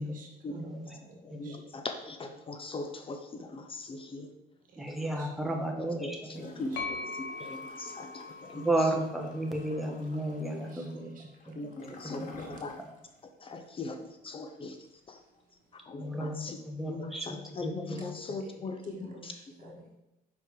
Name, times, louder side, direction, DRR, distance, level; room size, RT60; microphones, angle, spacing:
voice 1, 0.0-1.2 1.4-1.6 4.7-4.8 5.2-5.3 6.3-6.4 6.7-6.8 10.6-10.8 11.1-11.2 12.4-12.5 18.4-18.6 18.9-20.0, right 2 dB, 55° right, 2 dB, 1.4 m, -51 dB
voice 2, 1.2-4.3 5.4-5.7 6.0-8.9 11.5-12.8 13.4-15.2 15.8-19.3 19.6-19.8, left 3 dB, 30° left, 6 dB, 0.5 m, -40 dB
voice 3, 4.8-6.7 8.5-11.1 11.5-11.6 12.1-12.5 16.0-16.4 16.7-17.3 17.6-18.0, right 1 dB, ahead, 0 dB, 1.0 m, -33 dB
Gurgling / Toilet flush, 6.3-13.2 13.5-13.6, left 3 dB, 50° left, 1.1 m, -49 dB
sound 1, 6.8-10.5, left 3 dB, 80° left, 0.9 m, -42 dB
5.1 x 4.5 x 4.7 m, 0.95 s
cardioid pair, 110°, 17 cm